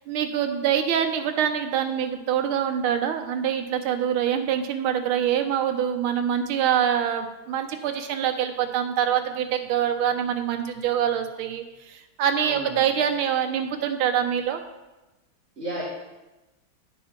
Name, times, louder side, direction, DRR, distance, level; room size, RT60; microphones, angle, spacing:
voice 1, 0.0-14.6, right 9 dB, 85° right, 5 dB, 1.6 m, -25 dB
voice 2, 12.4-12.9 15.6-15.8, right 2 dB, 35° right, -7 dB, 1.4 m, -32 dB
10.0 x 4.7 x 4.4 m, 1.1 s
omnidirectional pair, 2.3 m